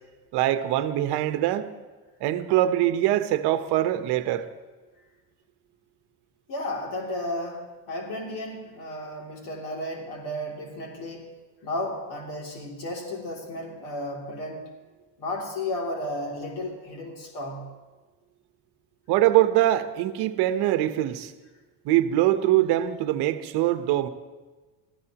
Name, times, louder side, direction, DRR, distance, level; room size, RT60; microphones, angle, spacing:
voice 1, 0.3-1.7 2.2-4.5 19.1-21.3 21.8-24.1, right 13 dB, 60° right, 10 dB, 1.1 m, -23 dB
voice 2, 6.5-11.3 11.6-14.7 15.2-17.7, left 1 dB, 55° left, -1 dB, 2.9 m, -33 dB
25.0 x 15.5 x 3.0 m, 1.3 s
cardioid pair, 140°, 45 cm